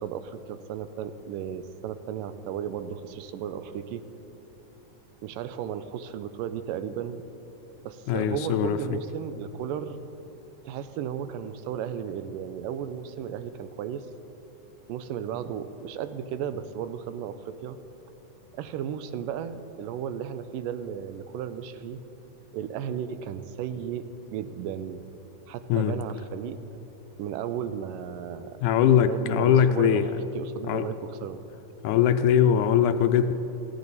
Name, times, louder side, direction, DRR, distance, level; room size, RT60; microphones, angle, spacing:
voice 1, 0.0-4.0 5.2-7.2 7.8-10.0 10.7-14.1 14.9-17.8 18.5-22.0 22.5-25.0 25.5-26.6 27.2-28.6 29.1-30.0 30.4-31.4, right 9 dB, 90° right, 11 dB, 2.3 m, -34 dB
voice 2, 8.1-9.0 25.7-26.0 28.6-30.1 30.7-30.9 31.8-33.3, left 9 dB, 80° left, 9 dB, 2.0 m, -21 dB
19.5 x 16.0 x 4.1 m, 3.0 s
omnidirectional pair, 3.8 m